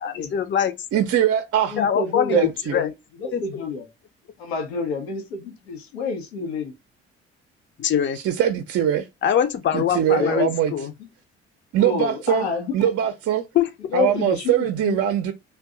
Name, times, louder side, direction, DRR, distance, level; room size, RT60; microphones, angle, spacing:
voice 1, 0.0-0.7 1.8-2.9 3.3-3.4 7.8-8.2 9.2-10.9 13.5-13.7, left 9 dB, 40° left, 0.5 m, -23 dB
voice 2, 0.9-1.8 2.3-2.7 8.2-9.1 9.7-10.9 11.7-12.5 12.7-13.4 13.9-15.3, right 10 dB, 50° right, 0.5 m, -22 dB
voice 3, 1.7-2.9 3.2-3.9 4.4-6.7 10.2-10.5 11.0-11.1 11.8-12.9 13.9-15.0, left 4 dB, 90° left, 0.7 m, -28 dB
2.6 x 2.3 x 3.6 m
hypercardioid pair, 50°, 31 cm